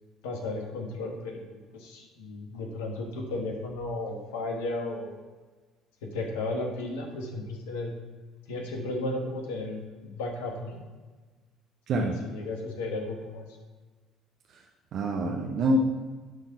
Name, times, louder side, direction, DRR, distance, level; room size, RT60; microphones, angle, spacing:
voice 1, 0.2-5.1 6.0-7.9 8.5-10.8 11.9-13.5, left 2 dB, 75° left, 1 dB, 1.3 m, -34 dB
voice 2, 11.9-12.2 14.5-14.6 14.9-15.8, equal, 55° right, 0 dB, 0.8 m, -26 dB
10.5 x 4.0 x 5.7 m, 1.3 s
hypercardioid pair, 55°, 0 cm